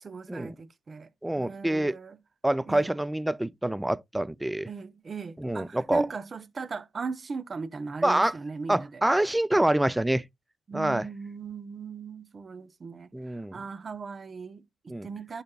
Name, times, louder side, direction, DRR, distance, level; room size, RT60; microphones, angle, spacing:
voice 1, 0.0-1.1 1.4-2.2 2.7-2.9 4.7-9.0 10.7-15.4, right 4 dB, 45° right, 0.9 m, -38 dB
voice 2, 1.2-2.0 2.4-4.7 5.4-6.1 8.0-8.3 8.7-10.3 10.7-11.0 13.1-13.6 14.9-15.1, right 1 dB, 10° right, 0.4 m, -26 dB
10.5 x 5.8 x 2.3 m
supercardioid pair, 55°, 0 cm